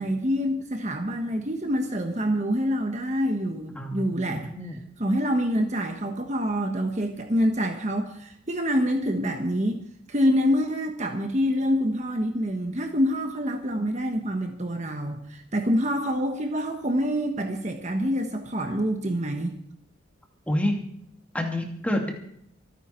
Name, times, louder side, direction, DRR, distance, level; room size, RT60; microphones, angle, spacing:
voice 1, 0.0-9.8 10.1-19.5, equal, 35° right, 4 dB, 1.3 m, -26 dB
voice 2, 3.8-4.8 20.5-20.8 21.3-22.1, left 1 dB, 5° left, 2 dB, 2.5 m, -28 dB
26.0 x 9.6 x 4.5 m, 0.70 s
head